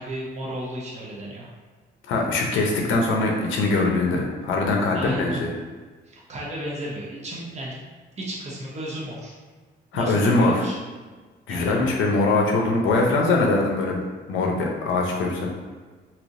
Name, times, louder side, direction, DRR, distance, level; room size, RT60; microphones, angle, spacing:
voice 1, 0.0-1.5 4.9-5.4 6.0-7.7 8.2-9.3 9.9-10.8 11.5-11.8, right 1 dB, 35° right, -5 dB, 0.9 m, -34 dB
voice 2, 2.1-5.5 9.9-10.6 11.5-14.0 14.3-15.5, left 2 dB, 80° left, 0 dB, 0.6 m, -22 dB
3.2 x 2.8 x 2.6 m, 1.4 s
cardioid pair, 90°, 20 cm